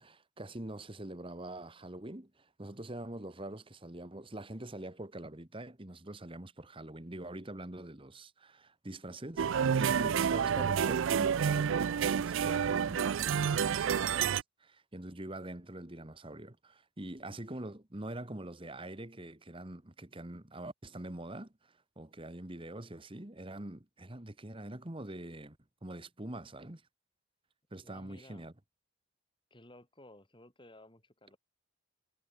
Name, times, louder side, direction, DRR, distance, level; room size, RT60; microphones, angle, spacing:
voice 1, 0.0-26.8 27.7-28.5, right 1 dB, 25° right, 1.4 m, -44 dB
sound 1, 9.4-14.4, right 7 dB, 65° right, 0.4 m, -29 dB
voice 2, 27.8-28.5 29.5-31.4, left 1 dB, 20° left, 3.5 m, -56 dB
head